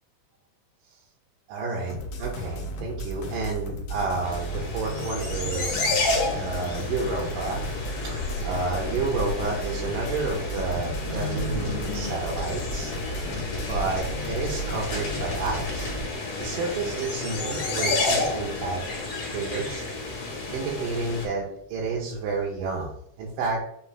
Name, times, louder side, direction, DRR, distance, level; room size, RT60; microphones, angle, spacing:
voice 1, 1.5-5.8 6.4-7.7 8.0-13.3 13.7-15.9 16.4-18.8 19.3-19.9 20.5-23.6, right 4 dB, 85° right, -2 dB, 2.2 m, -30 dB
sound 1, 1.9-16.0, equal, 85° left, 1.4 m, -34 dB
sound 2, 4.2-21.3, left 3 dB, 60° left, 2.2 m, -31 dB
5.4 x 3.3 x 2.3 m, 0.74 s
omnidirectional pair, 3.8 m